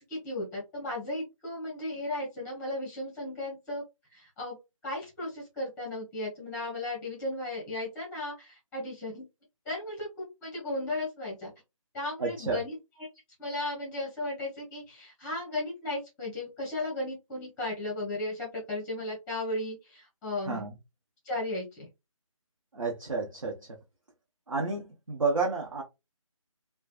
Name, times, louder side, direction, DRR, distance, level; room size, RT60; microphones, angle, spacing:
voice 1, 0.0-3.8 4.1-4.6 4.8-9.2 9.6-11.5 11.9-13.1 13.4-20.7 21.2-21.9, left 2 dB, 5° left, 0.9 m, -35 dB
voice 2, 12.2-12.6 20.5-20.7 22.7-23.7 24.5-25.8, right 4 dB, 65° right, 1.0 m, -30 dB
3.2 x 2.2 x 2.4 m
figure-of-eight pair, 155°, 18 cm